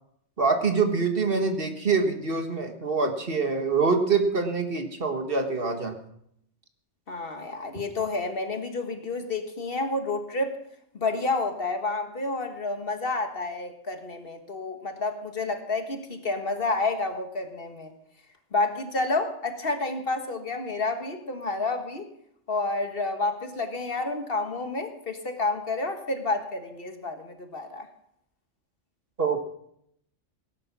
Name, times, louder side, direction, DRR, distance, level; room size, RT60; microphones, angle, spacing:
voice 1, 0.4-6.0 29.2-29.4, right 4 dB, 50° right, 5 dB, 1.7 m, -25 dB
voice 2, 7.1-10.5 10.9-17.9 18.5-22.0 22.5-27.9, left 3 dB, 50° left, 6 dB, 1.6 m, -29 dB
18.5 x 10.5 x 6.0 m, 0.74 s
omnidirectional pair, 1.2 m